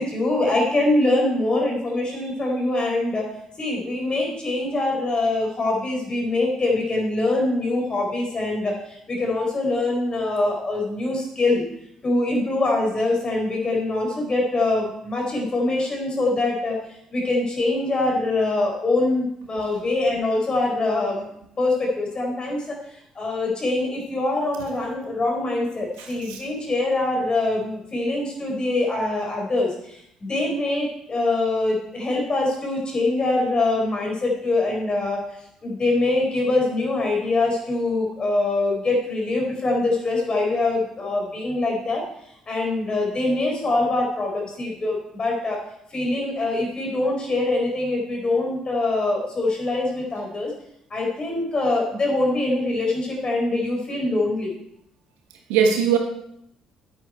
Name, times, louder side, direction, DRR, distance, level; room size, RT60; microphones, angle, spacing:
voice 1, 0.0-3.3 3.6-8.7 9.1-11.7 12.0-16.8 17.1-21.2 21.6-22.8 23.1-29.7 30.2-35.2 35.6-42.0 42.5-45.6 45.9-50.5 50.9-54.5, left 2 dB, 35° left, 0 dB, 4.5 m, -23 dB
voice 2, 26.0-26.4 55.5-56.0, right 7 dB, 75° right, 4 dB, 1.4 m, -21 dB
9.3 x 9.2 x 4.5 m, 0.74 s
figure-of-eight pair, 45°, 3 cm